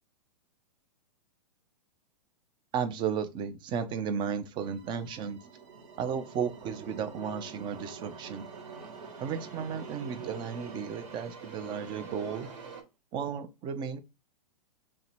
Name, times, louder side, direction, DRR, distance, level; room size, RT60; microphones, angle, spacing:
voice 1, 2.7-5.4 6.0-8.5 9.2-12.5 13.1-14.0, right 7 dB, 20° right, 0.4 m, -34 dB
sound 1, 4.6-12.8, right 5 dB, 50° right, 1.2 m, -50 dB
sound 2, 4.8-12.7, right 5 dB, 75° right, 0.8 m, -47 dB
3.1 x 2.7 x 4.3 m
hypercardioid pair, 120°, 21 cm